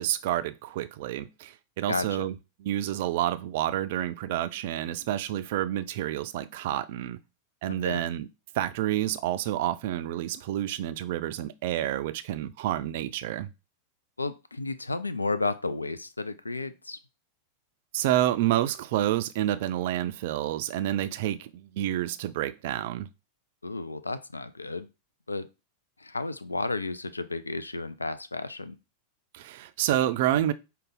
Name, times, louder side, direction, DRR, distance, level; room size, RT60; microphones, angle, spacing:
voice 1, 0.0-7.2 7.6-8.3 8.5-13.5 17.9-23.1 29.3-30.5, right 13 dB, 55° right, 0.3 m, -29 dB
voice 2, 1.9-2.3 7.8-8.0 14.2-17.0 23.6-24.9 25.3-25.5 26.0-28.8, left 3 dB, 85° left, 0.3 m, -32 dB
5.1 x 2.2 x 3.7 m
figure-of-eight pair, 90°, 0 cm